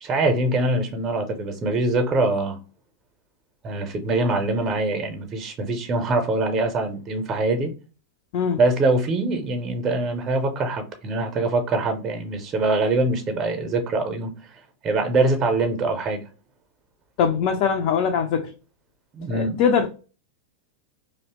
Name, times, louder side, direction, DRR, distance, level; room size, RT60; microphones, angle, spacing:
voice 1, 0.0-2.6 3.6-7.7 8.6-16.2 19.1-19.6, right 2 dB, 25° right, 0.5 m, -23 dB
voice 2, 17.2-18.5 19.3-19.9, left 7 dB, 45° left, 0.3 m, -22 dB
2.6 x 2.0 x 2.9 m
figure-of-eight pair, 90°, 0 cm